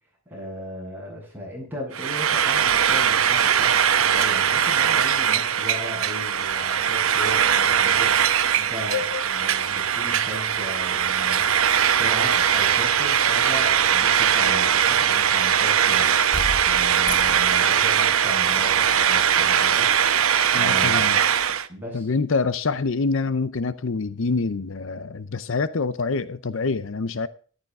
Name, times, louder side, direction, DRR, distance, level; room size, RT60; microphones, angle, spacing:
voice 1, 0.3-8.2 8.6-11.7 12.0-16.2 16.5-21.1 21.7-22.1, equal, 10° right, 7.7 m, -36 dB
Frying (food), 1.9-21.7, right 8 dB, 75° right, 0.9 m, -20 dB
voice 2, 8.9-9.2 20.5-21.2 21.9-27.3, left 4 dB, 60° left, 0.6 m, -26 dB
sound 1, 14.8-15.1 16.3-18.0 18.5-18.8, left 2 dB, 20° left, 0.8 m, -34 dB
13.5 x 12.0 x 3.6 m
head